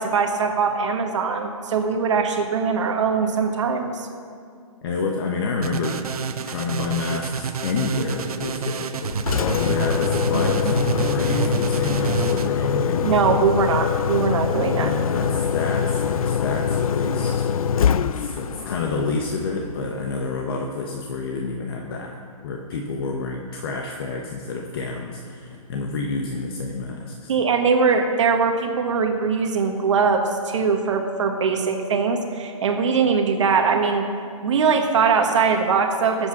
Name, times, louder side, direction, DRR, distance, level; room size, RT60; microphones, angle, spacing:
voice 1, 0.0-4.1 13.0-14.9 27.3-34.0 34.4-36.3, right 5 dB, 55° right, 3 dB, 1.5 m, -21 dB
voice 2, 4.8-6.1 6.5-13.1 14.7-17.5 17.9-22.1 22.4-27.3, left 4 dB, 40° left, 2 dB, 1.1 m, -28 dB
sound 1, 5.6-12.5, right 6 dB, 85° right, 0.9 m, -28 dB
Engine, 9.1-20.1, left 8 dB, 70° left, 0.6 m, -24 dB
19.0 x 8.3 x 6.0 m, 2.2 s
hypercardioid pair, 165°, 18 cm